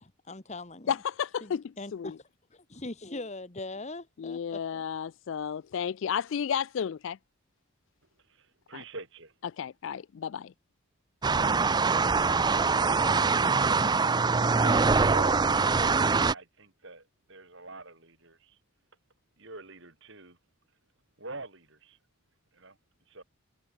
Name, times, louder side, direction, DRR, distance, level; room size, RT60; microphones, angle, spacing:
voice 1, 0.0-1.0 1.4-2.1 2.5-4.4 4.7-4.8, left 2 dB, 30° left, 1.4 m, -41 dB
voice 2, 0.9-2.2 4.2-7.2 8.7-8.8 9.6-10.5, left 7 dB, 55° left, 0.3 m, -32 dB
voice 3, 8.7-9.3 14.6-15.4 15.7-17.0 17.3-18.4 19.4-20.4 21.2-22.0 22.6-22.7 23.1-23.2, right 2 dB, 55° right, 5.0 m, -44 dB
sound 1, 11.2-16.3, right 4 dB, 20° right, 0.4 m, -24 dB
head